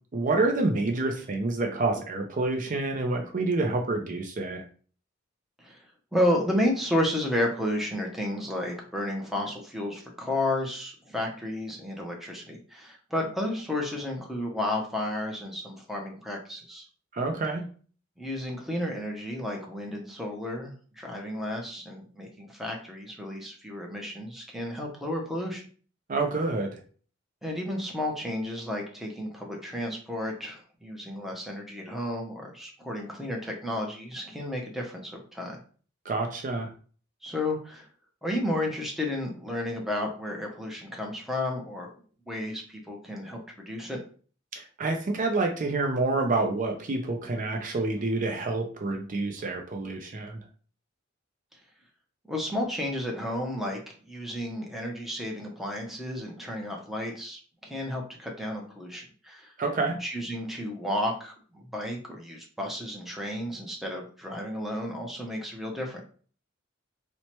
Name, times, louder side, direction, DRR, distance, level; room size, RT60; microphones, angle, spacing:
voice 1, 0.1-4.6 17.1-17.6 26.1-26.8 36.1-36.7 44.5-50.4 59.6-60.0, right 3 dB, 40° right, 3 dB, 0.5 m, -28 dB
voice 2, 6.1-16.8 18.2-25.6 27.4-35.6 37.2-37.9 38.2-41.9 42.2-43.4 43.7-44.0 52.3-59.5 60.0-66.0, left 1 dB, ahead, 0 dB, 0.6 m, -32 dB
4.3 x 2.1 x 3.0 m, 0.42 s
head